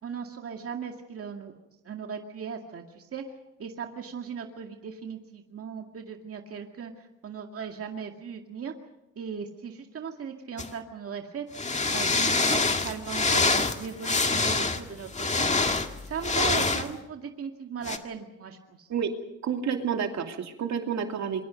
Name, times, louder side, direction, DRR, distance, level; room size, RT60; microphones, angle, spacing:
voice 1, 0.0-1.5 1.8-3.2 3.6-8.7 9.2-11.5 11.9-15.5 16.0-18.9, right 6 dB, 50° right, 3 dB, 2.2 m, -38 dB
sound 1, 10.6-10.7 11.5-16.9 17.8-18.0, left 3 dB, 25° left, 1.9 m, -25 dB
voice 2, 19.4-21.4, right 7 dB, 65° right, 4 dB, 2.6 m, -29 dB
26.5 x 23.5 x 5.3 m, 0.87 s
cardioid pair, 90°, 30 cm